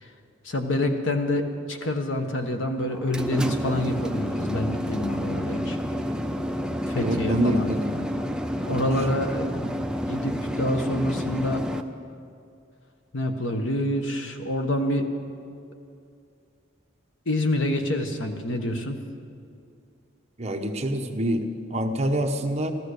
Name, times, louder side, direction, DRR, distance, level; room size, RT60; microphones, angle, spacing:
voice 1, 0.4-5.8 6.9-7.7 8.6-11.6 13.1-15.0 17.2-19.0, left 1 dB, 70° left, 5 dB, 1.2 m, -27 dB
sound 1, 2.9-11.8, equal, 5° right, 0.4 m, -29 dB
voice 2, 7.0-8.0 20.4-22.7, right 1 dB, 30° right, 4 dB, 0.9 m, -26 dB
14.0 x 13.5 x 6.6 m, 2.4 s
head